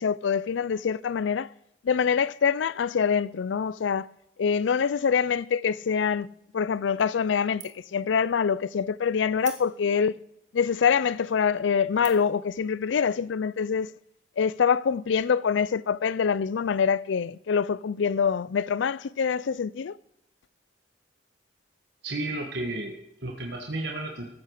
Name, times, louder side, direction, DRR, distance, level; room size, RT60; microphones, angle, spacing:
voice 1, 0.0-1.5 1.8-4.1 4.4-6.3 6.5-10.1 10.5-13.9 14.4-20.0, left 6 dB, 80° left, 0.4 m, -25 dB
sound 1, 7.0-7.3 7.6-8.0 8.4-8.5 9.4-10.1 10.7-10.8 11.4-11.6 12.0-12.4, right 9 dB, 40° right, 1.8 m, -44 dB
voice 2, 22.0-24.3, right 2 dB, 65° right, 1.5 m, -33 dB
14.0 x 8.3 x 6.4 m
head